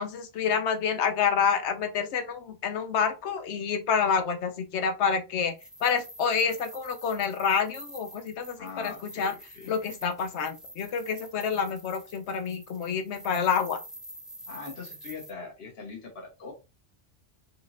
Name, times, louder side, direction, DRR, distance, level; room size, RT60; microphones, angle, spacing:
voice 1, 0.0-5.5 5.8-9.3 9.7-13.8, left 6 dB, 80° left, 1.0 m, -28 dB
sound 1, 5.5-15.3, right 1 dB, ahead, 0.3 m, -47 dB
voice 2, 8.6-9.8 14.5-16.5, left 4 dB, 65° left, 1.4 m, -42 dB
4.1 x 3.1 x 2.5 m
omnidirectional pair, 1.1 m